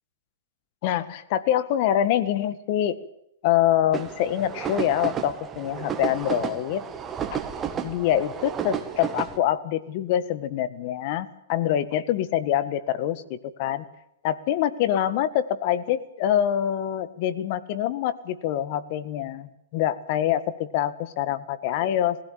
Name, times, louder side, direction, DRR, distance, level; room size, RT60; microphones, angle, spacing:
voice 1, 0.8-3.0 3.4-6.8 7.8-13.9 14.2-22.2, left 11 dB, 50° left, 15 dB, 1.6 m, -25 dB
sound 1, 3.9-9.4, right 8 dB, 20° right, 2.0 m, -32 dB
21.0 x 16.0 x 8.9 m, 0.78 s
hypercardioid pair, 140°, 0 cm